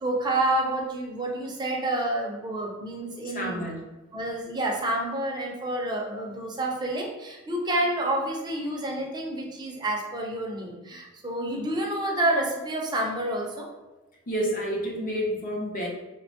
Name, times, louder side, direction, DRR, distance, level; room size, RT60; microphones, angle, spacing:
voice 1, 0.0-3.6 4.1-13.7, right 1 dB, 20° right, -1 dB, 0.5 m, -29 dB
voice 2, 3.2-3.8 14.3-15.9, equal, 40° left, -1 dB, 0.6 m, -29 dB
2.8 x 2.1 x 2.8 m, 1.1 s
head